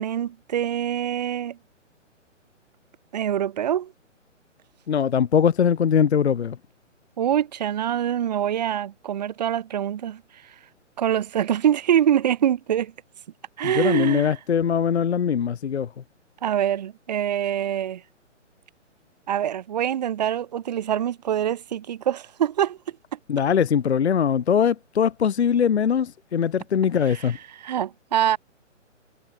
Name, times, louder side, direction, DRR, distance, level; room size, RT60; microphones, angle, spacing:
voice 1, 0.0-1.6 3.1-3.9 7.2-10.2 11.0-12.9 13.6-14.4 16.4-18.0 19.3-22.8 23.1-23.2 27.1-27.3 27.6-28.4, right 10 dB, 35° right, 1.3 m, -24 dB
voice 2, 4.9-6.6 13.6-15.9 23.3-27.4, left 7 dB, 60° left, 0.6 m, -21 dB
figure-of-eight pair, 135°, 38 cm